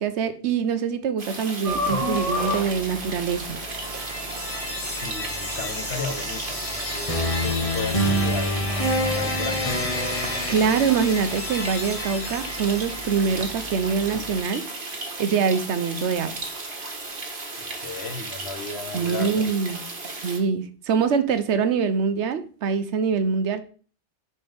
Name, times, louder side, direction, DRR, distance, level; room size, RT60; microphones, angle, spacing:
voice 1, 0.0-3.6 10.5-14.6 15.2-16.3 18.9-19.8 20.2-23.6, right 6 dB, 80° right, 1.0 m, -24 dB
sound 1, 1.2-20.4, right 3 dB, 50° right, 1.5 m, -35 dB
sound 2, 1.6-14.4, equal, 35° right, 0.9 m, -35 dB
sound 3, 3.7-13.6, left 1 dB, 30° left, 1.3 m, -28 dB
voice 2, 4.8-9.8 17.6-19.5, left 4 dB, 65° left, 1.2 m, -35 dB
9.8 x 4.4 x 3.4 m
omnidirectional pair, 1.2 m